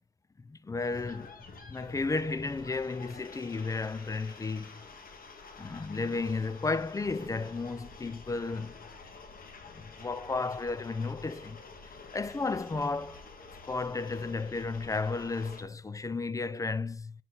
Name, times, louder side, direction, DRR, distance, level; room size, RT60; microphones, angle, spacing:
voice 1, 0.4-1.3 1.7-4.8 5.6-8.7 9.7-11.6 11.9-13.3 13.7-17.2, left 3 dB, 15° left, 0.4 m, -33 dB
sound 1, 0.8-15.6, left 4 dB, 45° left, 1.7 m, -49 dB
7.7 x 4.4 x 3.9 m
cardioid pair, 90°, 20 cm